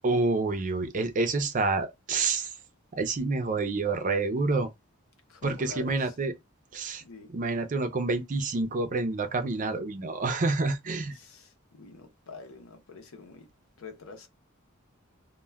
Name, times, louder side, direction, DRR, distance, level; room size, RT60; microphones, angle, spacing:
voice 1, 0.0-2.5 2.9-4.7 5.4-6.3 6.7-7.0 7.3-11.2, right 3 dB, 40° right, 0.5 m, -28 dB
voice 2, 5.3-6.1 7.0-7.3 11.1-13.5 13.8-14.3, left 4 dB, 75° left, 0.7 m, -46 dB
2.2 x 2.1 x 3.3 m
head